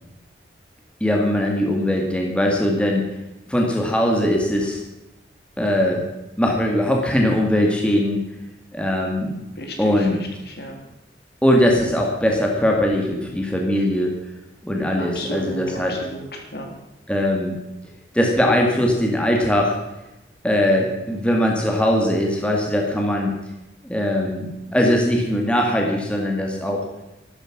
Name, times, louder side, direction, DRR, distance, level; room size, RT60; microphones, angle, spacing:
voice 1, 1.0-3.0 3.5-4.8 5.6-6.0 6.4-8.2 8.7-9.4 9.8-10.2 11.4-14.1 14.6-15.9 17.1-17.6 18.1-19.8 20.4-23.3 23.8-26.9, left 1 dB, 5° left, 0 dB, 2.0 m, -20 dB
voice 2, 9.6-10.2 10.5-10.8 15.0-16.7, equal, 60° left, 2 dB, 3.5 m, -33 dB
14.0 x 12.5 x 6.1 m, 0.96 s
head